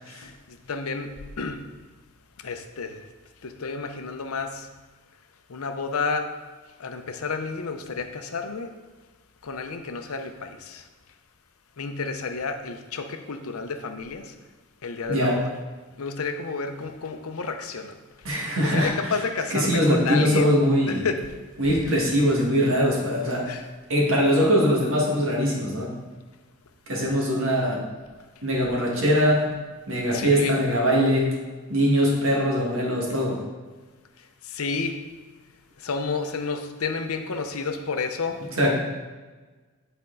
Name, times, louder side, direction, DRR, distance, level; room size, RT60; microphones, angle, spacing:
voice 1, 0.1-1.6 2.4-3.0 3.4-4.7 5.5-6.3 6.8-8.7 9.4-10.8 11.8-14.3 14.8-15.5 16.0-18.0 18.6-20.6 20.9-21.3 21.9-22.0 23.5-23.7 30.0-30.6 34.5-35.0 35.8-38.7, left 4 dB, 75° left, 7 dB, 0.7 m, -31 dB
voice 2, 18.2-19.1 19.5-21.1 21.6-23.5 23.9-25.9 26.9-27.8 28.4-29.4 29.9-31.3 31.7-33.4 38.6-38.7, equal, 65° right, -3 dB, 1.8 m, -22 dB
9.0 x 4.4 x 3.8 m, 1.3 s
head